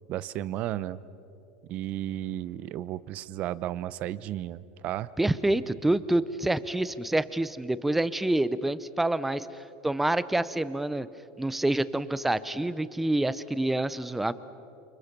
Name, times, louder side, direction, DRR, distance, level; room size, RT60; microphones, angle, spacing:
voice 1, 0.1-1.0 1.6-5.1, right 13 dB, 40° right, 18 dB, 0.7 m, -33 dB
voice 2, 5.2-9.5 9.8-11.1 11.4-14.3, right 1 dB, 5° right, 15 dB, 0.6 m, -27 dB
29.5 x 28.5 x 6.0 m, 2.8 s
supercardioid pair, 160°, 4 cm